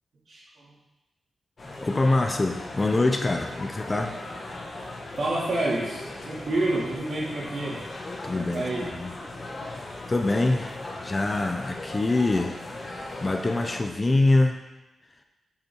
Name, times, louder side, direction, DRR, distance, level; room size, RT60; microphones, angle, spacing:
voice 1, 0.3-0.8 5.2-7.8 8.3-8.8, right 2 dB, 60° right, -6 dB, 2.6 m, -29 dB
sound 1, 1.6-13.8, left 2 dB, 40° left, 1.5 m, -38 dB
voice 2, 1.8-4.2 8.2-9.1 9.6-9.8 10.1-12.6 12.9-14.6, left 2 dB, 25° left, 5 dB, 0.6 m, -25 dB
7.2 x 5.3 x 4.6 m, 1.0 s
wide cardioid pair, 105°, 0 cm